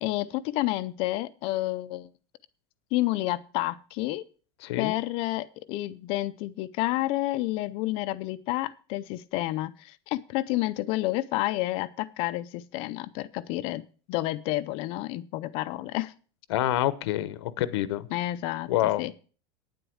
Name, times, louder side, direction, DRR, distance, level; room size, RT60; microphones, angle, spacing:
voice 1, 0.0-2.1 2.9-4.2 4.8-13.8 14.1-16.1 18.1-19.1, left 17 dB, 40° left, 13 dB, 0.5 m, -30 dB
voice 2, 4.6-4.9 16.5-18.1 18.7-19.2, left 13 dB, 75° left, 15 dB, 0.9 m, -27 dB
9.4 x 7.9 x 6.3 m, 0.39 s
supercardioid pair, 165°, 14 cm